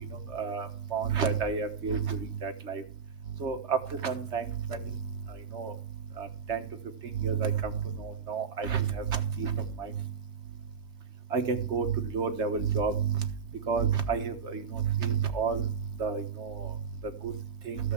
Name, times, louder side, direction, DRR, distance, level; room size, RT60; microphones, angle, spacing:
voice 1, 0.3-2.8 3.4-3.8 4.0-4.4 5.5-5.7 6.2-6.6 7.2-7.7 8.0-9.5 9.8-9.9 11.3-11.9 12.1-13.2 13.7-15.7 16.0-16.7 17.2-17.3 17.7-17.8, right 6 dB, 55° right, 6 dB, 1.5 m, -30 dB
14.0 x 5.5 x 7.2 m, 0.42 s
omnidirectional pair, 1.4 m